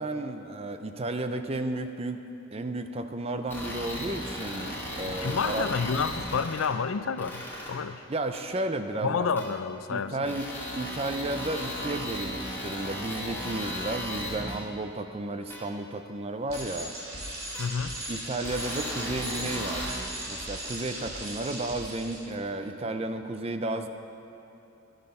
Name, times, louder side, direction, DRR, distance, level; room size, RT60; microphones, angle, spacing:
voice 1, 0.0-2.2 2.5-5.7 8.1-9.3 9.9-10.5 10.7-16.9 18.1-19.9 20.3-23.9, right 2 dB, 30° right, 8 dB, 0.5 m, -33 dB
sound 1, 3.5-6.7 7.2-7.7 8.3-8.4 9.4-9.5 10.2-14.5 15.5-15.6 16.5-16.6 17.5-17.6 18.4-19.9, left 1 dB, 10° left, 2.2 m, -36 dB
voice 2, 5.0-8.0 9.0-10.2 17.6-18.0, left 5 dB, 85° left, 12 dB, 0.5 m, -29 dB
Bicycle, 16.5-22.2, right 1 dB, 80° right, 3.5 m, -37 dB
13.0 x 10.5 x 5.4 m, 2.9 s
head